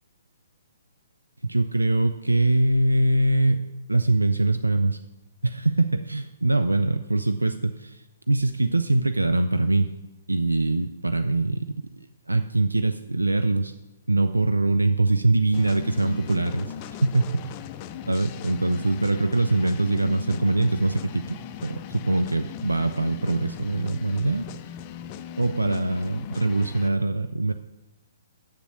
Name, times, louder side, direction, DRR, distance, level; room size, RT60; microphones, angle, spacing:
voice 1, 1.4-3.6 3.9-5.0 5.4-9.9 10.3-11.8 12.3-13.7 14.1-16.7 17.0-17.4 18.1-24.5 25.4-27.5, right 2 dB, 85° right, 9 dB, 0.4 m, -23 dB
sound 1, 15.5-26.9, left 9 dB, 30° left, 0.5 m, -39 dB
7.4 x 7.0 x 6.6 m, 1.0 s
figure-of-eight pair, 125°, 0 cm